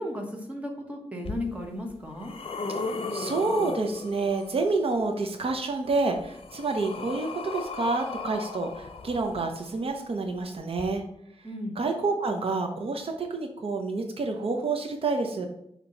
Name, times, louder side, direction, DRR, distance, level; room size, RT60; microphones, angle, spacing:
voice 1, 0.0-2.3 11.4-11.8, left 1 dB, 15° right, 1 dB, 1.2 m, -35 dB
sound 1, 1.2-1.3 1.9-4.7 5.9-9.8 10.7-10.8, left 3 dB, 60° left, 0.7 m, -36 dB
voice 2, 3.1-11.0 11.8-15.5, right 3 dB, 65° right, 4 dB, 0.7 m, -28 dB
7.0 x 2.9 x 5.2 m, 0.76 s
wide cardioid pair, 135°, 10 cm